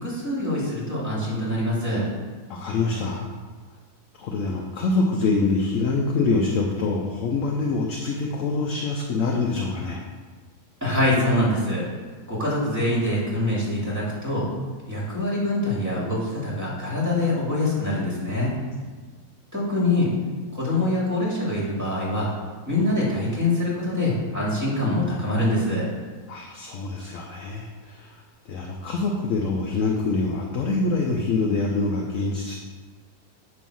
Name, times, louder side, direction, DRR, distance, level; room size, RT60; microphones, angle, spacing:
voice 1, 0.0-2.1 10.8-11.9 12.3-14.5 14.9-18.6 19.5-20.1 20.5-22.3 22.6-25.9, left 1 dB, 10° right, -6 dB, 2.4 m, -24 dB
voice 2, 2.5-3.2 4.2-10.0 26.3-32.6, left 3 dB, 60° left, 0 dB, 1.0 m, -25 dB
9.1 x 3.1 x 6.2 m, 1.4 s
omnidirectional pair, 1.6 m